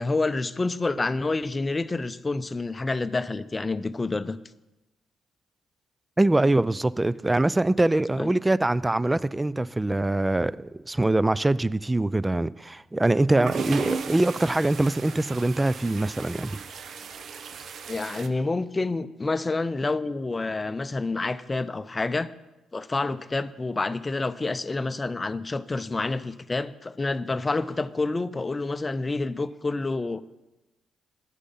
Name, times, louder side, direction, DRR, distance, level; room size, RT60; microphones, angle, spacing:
voice 1, 0.0-4.4 8.2-8.3 17.9-22.3 22.7-30.2, left 3 dB, 30° left, 0.6 m, -28 dB
voice 2, 6.2-16.6, right 2 dB, 15° right, 0.4 m, -23 dB
sound 1, 13.3-18.3, right 5 dB, 55° right, 0.7 m, -36 dB
11.0 x 9.8 x 5.5 m
hypercardioid pair, 40°, 0 cm